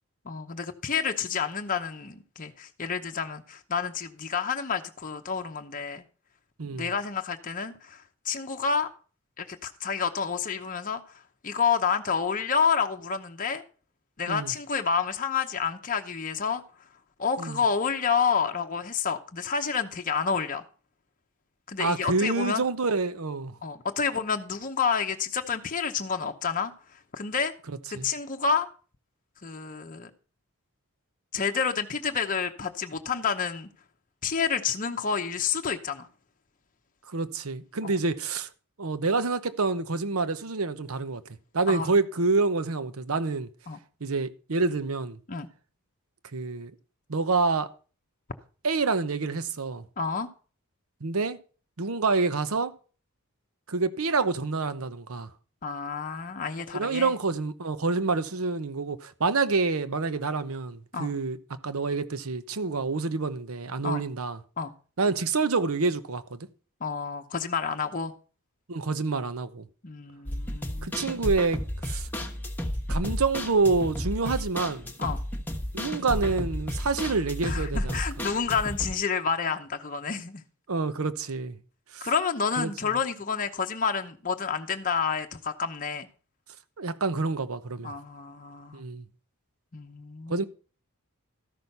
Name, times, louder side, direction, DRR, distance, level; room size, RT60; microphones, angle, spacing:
voice 1, 0.2-6.0 6.7-8.9 9.4-11.0 11.4-13.6 14.2-16.6 17.2-20.6 21.7-22.6 23.6-26.7 27.1-27.5 27.9-28.7 29.4-30.1 31.3-33.7 34.2-36.1 37.8-37.9 41.7-41.9 43.7-43.8 45.3-45.5 50.0-50.3 55.6-57.1 60.9-61.1 63.8-64.0 64.6-64.7 66.8-68.1 69.8-70.9 75.0-75.2 77.4-80.4 82.0-86.1 87.8-88.8 89.7-90.4, left 6 dB, 35° left, 0.8 m, -29 dB
voice 2, 6.6-6.9 14.3-14.5 17.4-17.6 21.8-23.6 27.9-28.1 37.1-38.5 38.8-41.2 41.5-43.5 44.0-45.2 46.3-46.7 47.1-47.7 48.6-49.8 51.0-51.4 51.8-52.7 53.7-55.3 56.7-61.4 61.6-64.4 65.0-66.5 68.7-69.7 70.8-72.1 72.9-74.9 75.7-78.0 80.7-81.6 81.9-82.1 82.6-82.9 86.8-87.9 88.7-89.0 90.3-90.4, right 3 dB, 70° right, 0.9 m, -27 dB
sound 1, 70.3-78.9, equal, 10° left, 1.2 m, -32 dB
13.5 x 6.2 x 5.4 m
head